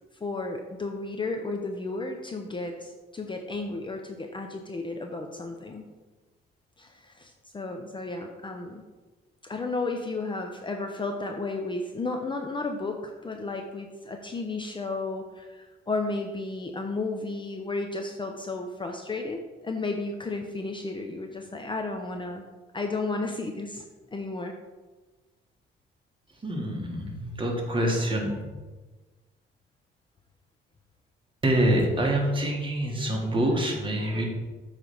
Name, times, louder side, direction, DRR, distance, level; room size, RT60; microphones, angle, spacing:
voice 1, 0.2-5.8 6.8-8.8 9.4-22.4 22.7-23.8 24.1-24.5, left 3 dB, 25° left, 3 dB, 0.6 m, -33 dB
voice 2, 26.4-28.4 31.4-34.2, right 1 dB, 25° right, 0 dB, 1.7 m, -26 dB
7.5 x 3.3 x 5.5 m, 1.2 s
cardioid pair, 90°, 20 cm